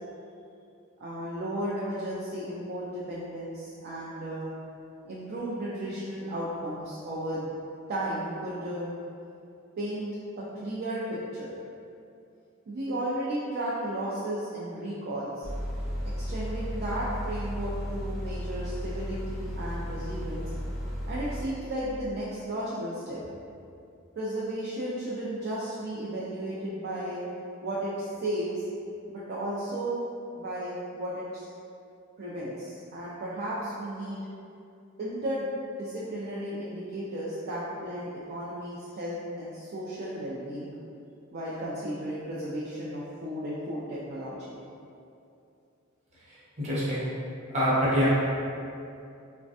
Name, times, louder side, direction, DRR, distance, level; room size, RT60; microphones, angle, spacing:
voice 1, 1.0-4.5 5.1-7.5 7.9-8.9 9.8-10.1 10.4-11.5 12.7-15.5 16.2-20.4 21.1-23.2 24.2-27.2 27.6-28.6 29.1-30.0 30.3-31.5 32.2-34.2 35.0-35.5 35.8-40.7 41.3-44.6, right 1 dB, 50° right, -8 dB, 0.4 m, -34 dB
sound 1, 15.4-21.5, equal, ahead, 0.5 m, -34 dB
voice 2, 46.6-47.1 47.5-48.1, equal, 35° right, -9 dB, 0.8 m, -25 dB
3.2 x 2.1 x 2.6 m, 2.6 s
head